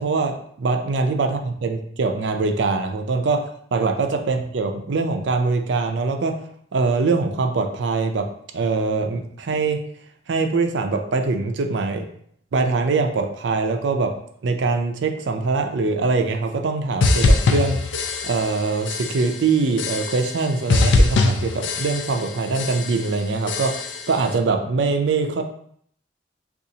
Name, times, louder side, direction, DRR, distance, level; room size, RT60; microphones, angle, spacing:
voice 1, 0.0-3.4 3.7-6.3 6.7-8.3 8.5-9.8 10.3-12.1 12.5-14.1 14.4-25.4, right 4 dB, 65° right, 5 dB, 0.4 m, -23 dB
sound 1, 17.0-18.6 18.9-19.4 19.8-20.4 20.7-22.3 22.5-23.1 23.5-24.1, left 3 dB, 65° left, 0.4 m, -21 dB
3.9 x 2.4 x 2.7 m, 0.65 s
head